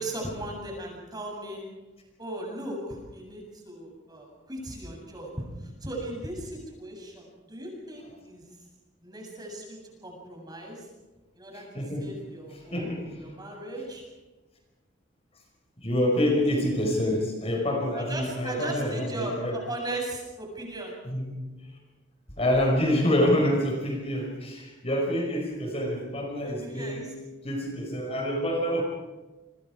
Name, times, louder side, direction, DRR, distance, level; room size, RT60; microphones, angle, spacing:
voice 1, 0.0-1.6 2.2-8.5 9.0-10.9 11.3-11.7 12.0-14.0 17.9-21.0 26.6-27.1, right 1 dB, 20° right, 0 dB, 7.7 m, -37 dB
voice 2, 11.5-12.1 12.7-13.1 15.8-19.6 21.0-21.3 22.4-27.1 27.4-28.8, left 1 dB, 30° left, 1 dB, 5.1 m, -27 dB
29.5 x 26.0 x 4.9 m, 1.2 s
head